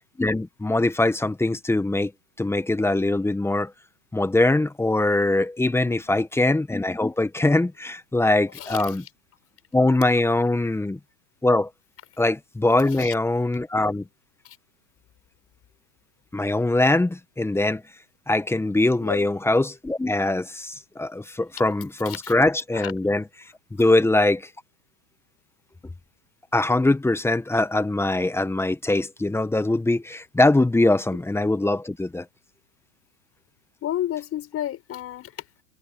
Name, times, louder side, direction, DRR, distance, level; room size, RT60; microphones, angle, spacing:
voice 1, 0.2-2.1 2.4-3.7 4.1-9.0 9.7-11.0 11.4-11.7 12.2-14.0 16.3-17.8 18.3-23.2 23.7-24.5 26.5-32.2, left 2 dB, 5° left, 1.5 m, -22 dB
voice 2, 5.9-6.2 8.5-9.1 10.6-10.7 12.9-13.1 14.4-14.6 19.0-19.3 22.0-22.3 22.7-22.9 33.8-35.6, left 12 dB, 35° left, 6.1 m, -32 dB
hypercardioid pair, 110°, 42 cm